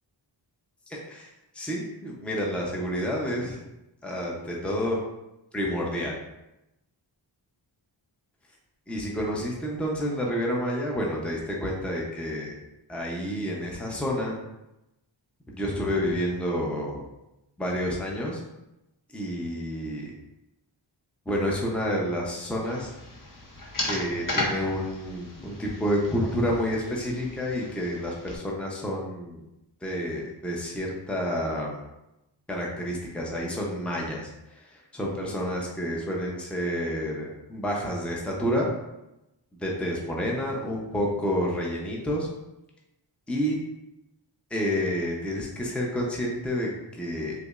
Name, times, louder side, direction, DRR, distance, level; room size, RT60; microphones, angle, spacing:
voice 1, 0.9-3.6 4.0-5.0 5.5-6.2 8.9-12.5 12.9-14.4 15.5-17.0 17.6-18.4 19.1-20.1 21.3-22.9 23.8-29.4 29.8-31.8 32.5-38.7 39.5-42.3 43.3-43.6 44.5-47.3, equal, 5° left, -3 dB, 0.6 m, -29 dB
sound 1, 22.6-28.4, left 2 dB, 45° left, 0.8 m, -35 dB
4.9 x 2.1 x 2.4 m, 0.94 s
wide cardioid pair, 55°, 46 cm